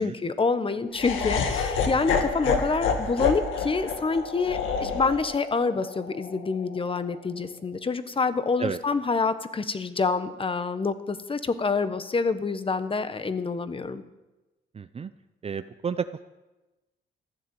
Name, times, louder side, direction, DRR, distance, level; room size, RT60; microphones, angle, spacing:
voice 1, 0.0-14.0, left 4 dB, 25° left, 12 dB, 1.2 m, -27 dB
Laughter, 0.9-7.1, left 5 dB, 80° left, 2.1 m, -28 dB
voice 2, 14.8-15.1 15.4-16.2, right 6 dB, 30° right, 11 dB, 0.6 m, -31 dB
15.0 x 10.0 x 7.8 m, 1.1 s
cardioid pair, 90°, 20 cm